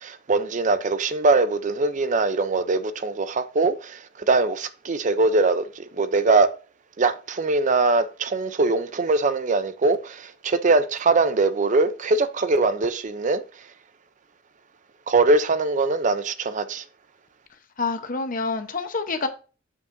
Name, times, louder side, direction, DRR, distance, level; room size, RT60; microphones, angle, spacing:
voice 1, 0.0-6.5 7.0-13.4 15.1-16.8, right 3 dB, 40° right, 0.5 m, -22 dB
voice 2, 17.8-19.3, left 4 dB, 45° left, 0.9 m, -27 dB
8.4 x 7.1 x 2.6 m
head